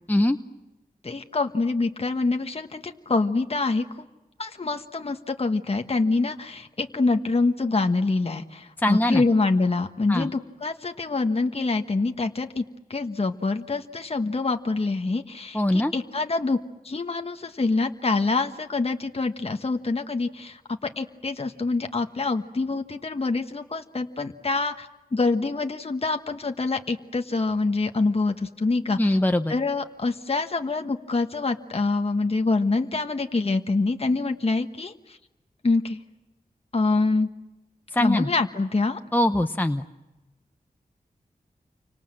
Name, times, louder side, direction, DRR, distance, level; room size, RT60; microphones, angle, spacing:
voice 1, 1.0-4.1 4.4-12.6 12.9-16.6 16.8-29.2 29.5-35.2 35.6-36.0 36.7-37.3 38.0-39.0, left 3 dB, 40° left, 5 dB, 1.3 m, -25 dB
voice 2, 8.8-9.2 10.1-10.3 15.5-15.9 29.0-29.5 37.9-38.3 39.1-39.8, left 1 dB, 10° left, 7 dB, 0.9 m, -22 dB
29.5 x 25.5 x 7.6 m, 1.1 s
wide cardioid pair, 75°, 15 cm